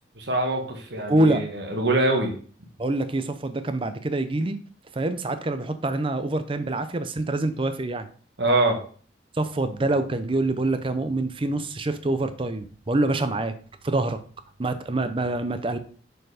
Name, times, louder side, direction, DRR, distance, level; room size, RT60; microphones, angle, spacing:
voice 1, 0.1-2.3 8.4-8.8, right 2 dB, 65° right, 2 dB, 1.6 m, -24 dB
voice 2, 1.1-1.4 2.8-4.6 4.9-8.1 9.3-13.5 13.8-14.2 14.6-15.8, right 2 dB, 30° right, 10 dB, 0.6 m, -25 dB
6.6 x 4.4 x 5.0 m, 0.43 s
head